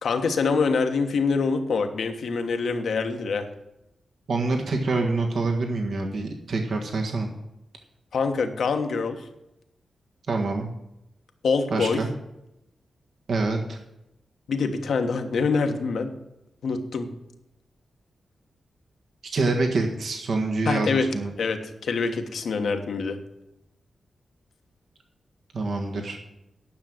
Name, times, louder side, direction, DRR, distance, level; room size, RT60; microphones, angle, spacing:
voice 1, 0.0-3.5 8.1-9.3 11.4-12.0 14.5-16.1 16.6-17.1 20.6-21.1 21.4-23.2, left 4 dB, 80° left, 6 dB, 1.3 m, -25 dB
voice 2, 4.3-7.3 10.3-10.7 11.7-12.1 13.3-13.8 19.3-21.3 25.5-26.2, right 3 dB, 75° right, 2 dB, 1.6 m, -26 dB
10.5 x 6.2 x 8.9 m, 0.88 s
cardioid pair, 65°, 0 cm